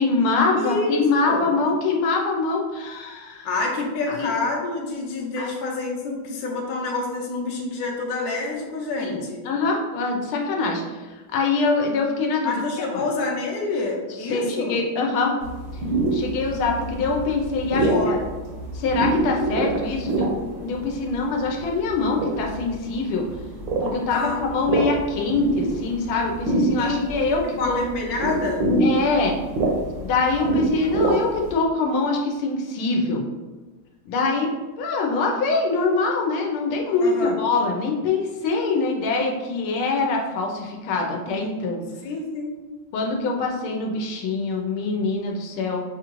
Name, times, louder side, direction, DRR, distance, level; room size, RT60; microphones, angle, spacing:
voice 1, 0.0-3.5 4.1-4.3 5.4-5.5 9.0-9.2 9.4-12.5 12.9-13.0 14.3-15.3 16.1-18.2 18.7-20.3 20.6-23.3 23.8-27.8 28.8-29.4 30.0-33.2 34.1-34.5 34.8-41.8 42.9-45.8, left 3 dB, 90° left, 1 dB, 1.5 m, -24 dB
voice 2, 0.6-1.4 3.4-9.4 12.4-14.8 17.7-18.2 24.1-24.4 26.8-27.1 27.6-28.6 37.0-37.4 42.0-42.5, left 3 dB, 60° left, -1 dB, 1.0 m, -27 dB
sound 1, 15.4-31.5, right 2 dB, 70° right, 1.3 m, -26 dB
5.4 x 2.5 x 3.0 m, 1.2 s
omnidirectional pair, 2.3 m